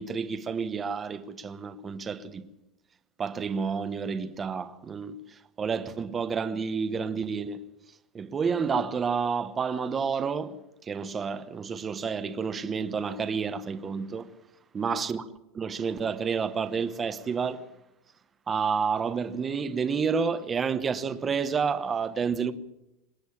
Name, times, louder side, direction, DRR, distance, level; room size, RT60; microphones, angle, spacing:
voice 1, 0.0-2.4 3.2-7.6 8.1-10.6 10.8-14.3 14.7-15.2 15.5-17.7 18.5-22.5, right 5 dB, 15° right, 1.1 m, -30 dB
26.0 x 10.5 x 10.0 m
supercardioid pair, 160°, 0 cm